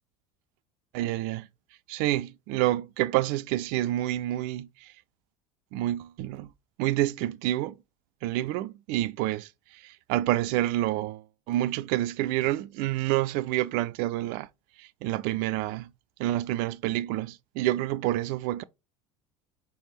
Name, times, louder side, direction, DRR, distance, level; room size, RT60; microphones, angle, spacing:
voice 1, 0.9-1.5 1.9-4.9 5.7-6.5 6.8-7.8 8.2-14.5 14.8-15.9 16.2-18.6, right 15 dB, 55° right, 0.4 m, -28 dB
4.9 x 3.4 x 3.0 m
hypercardioid pair, 75°, 18 cm